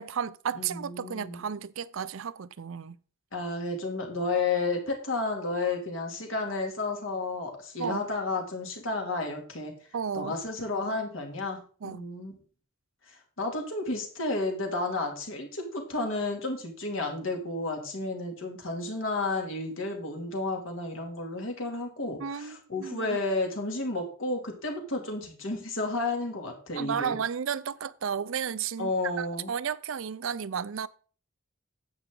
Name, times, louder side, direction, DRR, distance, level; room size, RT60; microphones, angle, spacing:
voice 1, 0.0-3.0 7.8-8.0 9.9-10.3 11.8-12.0 22.2-23.1 26.8-28.9 29.2-30.9, right 7 dB, 75° right, 0.5 m, -33 dB
voice 2, 0.5-1.5 3.3-9.7 10.1-12.4 13.1-27.2 28.8-29.5, left 2 dB, 75° left, 2.6 m, -32 dB
10.5 x 8.0 x 3.8 m
head